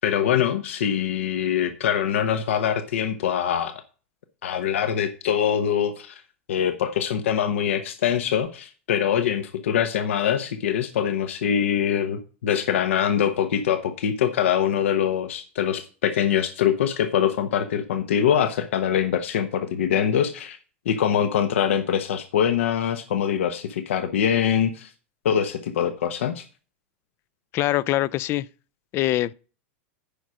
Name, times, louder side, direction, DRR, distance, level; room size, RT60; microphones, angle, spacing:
voice 1, 0.0-3.7 4.4-6.2 6.5-20.6 20.8-24.9 25.2-26.4, left 9 dB, 85° left, 1.0 m, -23 dB
voice 2, 27.5-28.5 28.9-29.3, left 16 dB, 40° left, 0.4 m, -23 dB
10.0 x 4.9 x 6.3 m
supercardioid pair, 130°, 7 cm